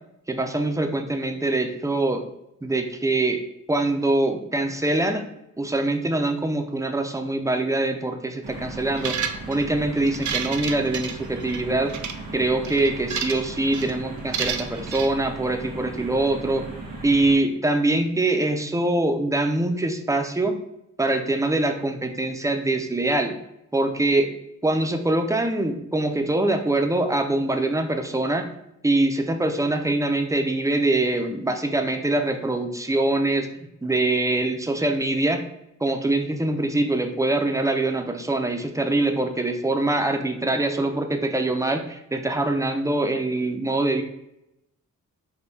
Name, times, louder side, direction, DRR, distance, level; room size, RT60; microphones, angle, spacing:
voice 1, 0.3-2.3 2.6-3.4 3.7-5.2 5.6-9.1 9.5-11.9 12.3-16.6 17.0-20.6 21.0-23.4 23.7-24.3 24.6-28.5 28.8-35.4 35.8-44.0, right 2 dB, 10° right, 5 dB, 0.4 m, -23 dB
sound 1, 8.4-17.4, right 3 dB, 80° right, 1.4 m, -37 dB
sound 2, 9.0-9.6 10.1-11.6 11.9-12.1 12.6-13.5 13.7-13.9 14.3-15.1, right 7 dB, 65° right, 0.5 m, -30 dB
5.3 x 2.2 x 4.4 m, 0.82 s
wide cardioid pair, 125°, 32 cm